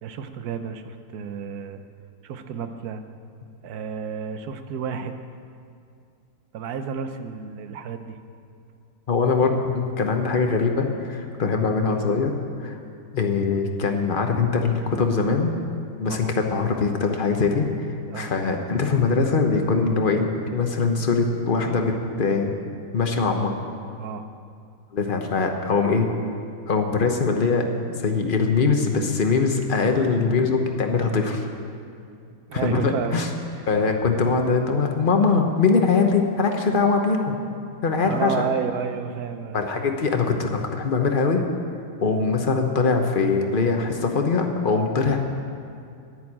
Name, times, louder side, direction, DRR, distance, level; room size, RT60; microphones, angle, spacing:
voice 1, 0.0-1.8 2.2-3.0 3.6-5.2 6.5-8.2 16.1-16.3 18.1-18.3 24.0-24.2 32.2-33.3 38.0-39.9, right 6 dB, 65° right, 8 dB, 1.0 m, -31 dB
voice 2, 9.1-12.3 12.6-12.8 13.1-15.5 16.0-17.9 18.1-22.5 22.9-23.5 24.9-26.1 26.7-31.5 32.5-33.3 33.7-37.4 37.8-38.3 39.5-41.4 42.0-45.2, left 4 dB, 45° left, 3 dB, 0.6 m, -22 dB
11.0 x 9.6 x 8.6 m, 2.4 s
omnidirectional pair, 2.3 m